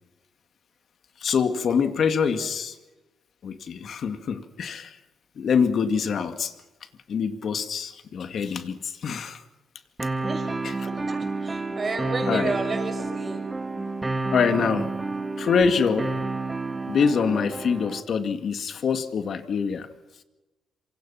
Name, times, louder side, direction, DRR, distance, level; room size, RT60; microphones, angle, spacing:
voice 1, 1.2-2.8 3.4-5.0 5.4-6.5 7.1-9.4 10.6-10.7 12.3-12.5 14.3-14.9 15.4-16.1 16.9-19.9, left 6 dB, 55° left, 9 dB, 2.3 m, -25 dB
sound 1, 10.0-18.0, right 3 dB, 15° right, 2.1 m, -30 dB
voice 2, 10.2-10.5 10.9-13.5, right 3 dB, 35° right, 5 dB, 6.1 m, -32 dB
26.5 x 25.0 x 5.9 m, 1.1 s
cardioid pair, 90°, 0 cm